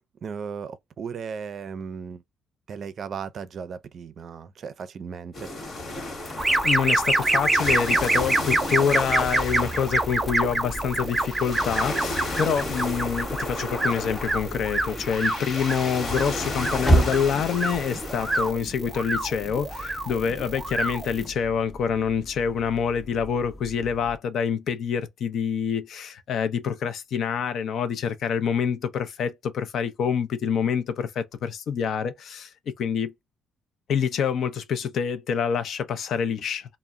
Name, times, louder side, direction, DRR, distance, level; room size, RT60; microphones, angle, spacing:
voice 1, 0.2-2.2 2.7-5.5, right 6 dB, 55° right, 0.4 m, -36 dB
sound 1, 5.3-18.5, left 2 dB, 45° left, 1.1 m, -34 dB
sound 2, 6.2-24.2, right 1 dB, 15° left, 0.6 m, -34 dB
sound 3, 6.4-21.3, right 2 dB, 15° right, 0.7 m, -27 dB
voice 2, 6.6-32.5 32.8-33.1 33.9-36.8, left 7 dB, 70° left, 0.5 m, -26 dB
2.2 x 2.0 x 3.5 m
cardioid pair, 90°, 0 cm